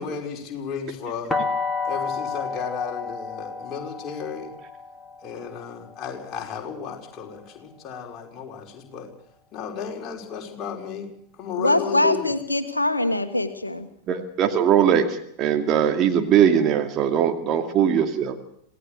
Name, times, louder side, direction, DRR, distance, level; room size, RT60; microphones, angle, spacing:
voice 1, 0.0-1.4 1.9-4.5 5.2-9.1 9.5-12.3, left 6 dB, 30° left, 0 dB, 5.4 m, -34 dB
sound 1, 1.3-7.1, left 4 dB, 10° left, 2.3 m, -31 dB
voice 2, 11.6-13.9, left 2 dB, 85° left, 10 dB, 1.4 m, -23 dB
voice 3, 14.1-18.4, right 8 dB, 35° right, 5 dB, 2.4 m, -20 dB
27.0 x 17.5 x 6.6 m, 0.69 s
figure-of-eight pair, 90°, 0 cm